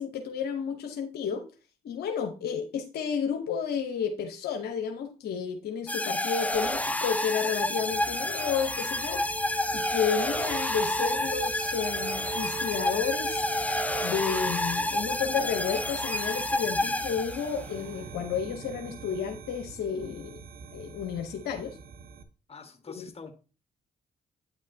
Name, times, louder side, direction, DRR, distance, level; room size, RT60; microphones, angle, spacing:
voice 1, 0.0-1.5 1.8-9.2 9.7-13.4 14.0-20.4 20.7-21.8 22.9-23.1, left 7 dB, 70° left, 5 dB, 0.8 m, -31 dB
sound 1, 5.9-17.7, left 1 dB, 10° left, 0.7 m, -29 dB
sound 2, 6.5-7.3 8.9-16.6, right 5 dB, 30° right, 0.9 m, -41 dB
sound 3, 7.5-22.2, right 5 dB, 65° right, 0.9 m, -46 dB
voice 2, 22.5-23.3, left 5 dB, 35° left, 7 dB, 1.4 m, -45 dB
8.9 x 6.3 x 2.7 m, 0.34 s
hypercardioid pair, 45°, 17 cm